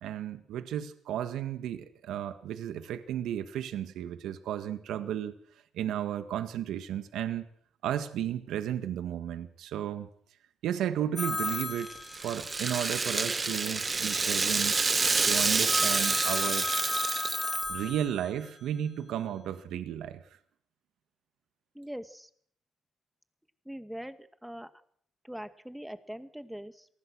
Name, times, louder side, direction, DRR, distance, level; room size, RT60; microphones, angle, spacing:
voice 1, 0.0-5.4 5.7-7.5 7.8-10.1 10.6-11.9 12.2-14.8 15.2-16.7 17.7-20.2, right 10 dB, 80° right, 9 dB, 1.8 m, -33 dB
Telephone, 11.2-12.7 15.6-18.5, left 2 dB, 20° left, 3.6 m, -33 dB
Rattle (instrument), 11.5-17.7, right 4 dB, 30° right, 1.5 m, -28 dB
voice 2, 21.7-22.3 23.7-24.7 25.2-26.9, equal, 5° right, 10 dB, 2.1 m, -42 dB
27.5 x 19.5 x 6.3 m, 0.63 s
cardioid pair, 90°, 0 cm